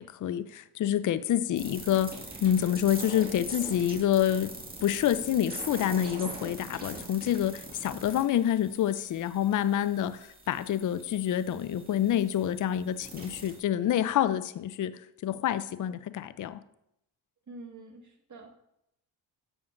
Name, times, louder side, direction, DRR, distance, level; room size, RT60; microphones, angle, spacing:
voice 1, 0.0-2.1 2.4-4.5 4.8-10.2 10.5-14.9 15.2-16.6, left 10 dB, 40° left, 0.5 m, -27 dB
sound 1, 1.6-13.6, right 2 dB, 20° right, 1.8 m, -43 dB
voice 2, 17.5-18.5, right 2 dB, 35° right, 1.8 m, -46 dB
7.2 x 7.1 x 2.5 m
supercardioid pair, 55°, 48 cm